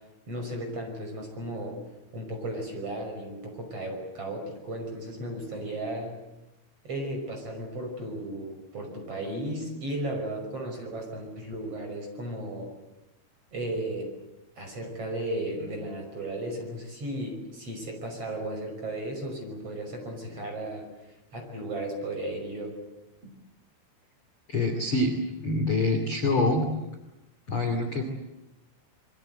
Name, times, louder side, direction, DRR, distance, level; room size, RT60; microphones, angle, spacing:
voice 1, 0.3-1.8 2.1-6.1 6.8-12.7 13.5-14.1 14.6-20.9 21.3-22.8 23.2-23.3, right 1 dB, 30° right, 3 dB, 6.3 m, -35 dB
voice 2, 24.5-25.2 25.4-26.7 27.5-28.0, left 2 dB, 35° left, 3 dB, 2.7 m, -25 dB
27.0 x 23.0 x 8.0 m, 0.96 s
omnidirectional pair, 5.7 m